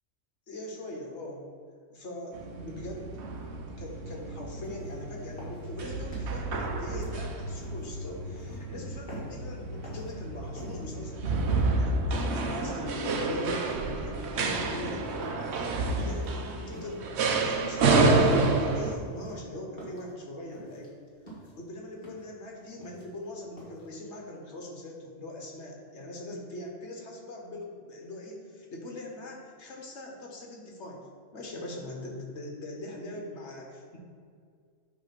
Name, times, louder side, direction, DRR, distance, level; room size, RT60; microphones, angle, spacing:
voice 1, 0.5-1.5 1.9-3.1 3.8-15.2 16.0-17.1 17.4-20.9 21.5-31.1 31.3-34.0, left 1 dB, 60° left, 0 dB, 1.5 m, -41 dB
sound 1, 2.3-19.0, right 3 dB, 65° right, 0.9 m, -29 dB
sound 2, 4.6-5.0 5.4-6.4 6.9-7.9 8.4-8.6 9.1-9.4 9.8-10.1 10.6-10.8 11.3-12.4 13.0-13.2 13.7-14.0 14.4-14.8 15.2-15.6 16.0-16.3 16.7-17.1 17.5-17.9 18.3-18.6 19.1-20.1 20.5-20.9 21.3-21.6 22.0-22.3 22.6-23.3 23.6-23.9, right 1 dB, 40° left, 1.9 m, -47 dB
8.7 x 3.3 x 5.8 m, 2.1 s
omnidirectional pair, 1.3 m